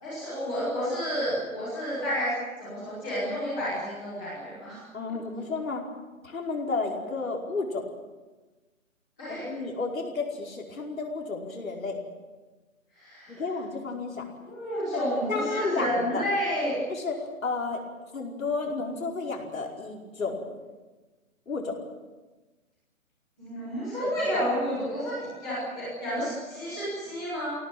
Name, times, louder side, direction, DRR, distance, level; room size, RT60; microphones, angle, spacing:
voice 1, 0.0-4.8 9.2-9.4 12.9-13.4 14.4-16.7 23.4-27.5, equal, ahead, -12 dB, 1.0 m, -30 dB
voice 2, 4.9-5.8 6.2-7.8 9.3-12.0 13.3-14.2 15.3-16.2 16.9-17.8 18.1-20.5 21.5-21.7 24.0-24.1, left 3 dB, 75° left, 0 dB, 5.1 m, -32 dB
23.0 x 17.5 x 9.3 m, 1.2 s
hypercardioid pair, 180°, 41 cm